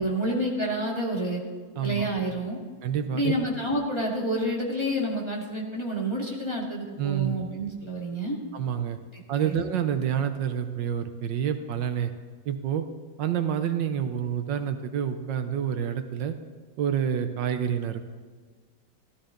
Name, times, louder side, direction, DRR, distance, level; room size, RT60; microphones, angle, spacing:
voice 1, 0.0-1.4 1.8-2.6 3.1-8.4 9.1-9.6, right 1 dB, 15° left, -3 dB, 1.9 m, -29 dB
voice 2, 1.8-2.1 2.8-3.3 7.0-7.4 8.5-9.0 9.3-12.1 12.5-12.8 13.2-16.3 16.8-18.1, right 8 dB, 75° right, 8 dB, 1.4 m, -28 dB
15.5 x 13.0 x 3.8 m, 1.5 s
omnidirectional pair, 2.0 m